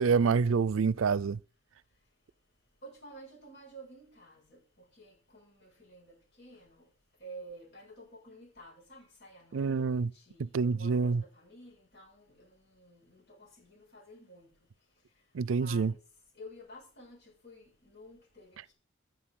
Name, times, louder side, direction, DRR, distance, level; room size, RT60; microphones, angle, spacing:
voice 1, 0.0-1.4 9.5-10.1 10.4-11.2 15.3-15.9, right 5 dB, 80° right, 0.4 m, -27 dB
voice 2, 2.8-6.9 7.2-15.3 15.5-16.0 16.3-18.7, right 1 dB, 55° left, 7.2 m, -52 dB
9.7 x 8.9 x 6.2 m
head